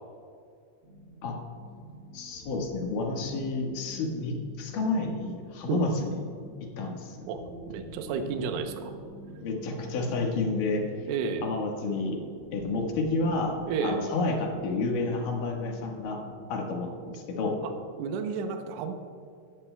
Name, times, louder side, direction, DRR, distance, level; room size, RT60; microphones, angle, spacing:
sound 1, 0.8-17.4, right 1 dB, 70° right, 4.9 m, -48 dB
voice 1, 2.1-6.2 6.8-7.3 9.4-10.8 11.4-12.2 12.5-13.5 13.8-16.2 16.5-17.6, left 3 dB, 60° left, 0 dB, 2.4 m, -30 dB
voice 2, 7.3-8.9 11.1-11.5 13.7-14.0 17.6-19.0, right 6 dB, 85° right, 6 dB, 3.3 m, -32 dB
17.5 x 13.0 x 2.2 m, 2.3 s
omnidirectional pair, 5.5 m